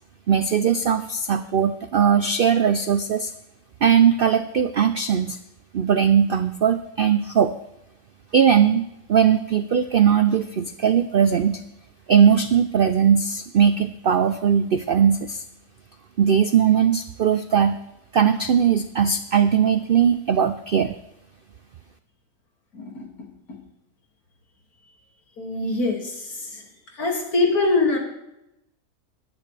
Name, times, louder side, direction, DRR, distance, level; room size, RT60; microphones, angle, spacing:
voice 1, 0.3-3.3 3.8-5.4 5.7-7.5 8.3-11.6 12.1-15.4 16.2-17.8 18.1-20.9, right 7 dB, 70° right, 10 dB, 0.5 m, -19 dB
voice 2, 22.7-23.3 25.4-26.6 26.9-28.0, left 3 dB, 75° left, 0 dB, 2.9 m, -24 dB
20.5 x 10.0 x 3.3 m, 0.87 s
omnidirectional pair, 1.6 m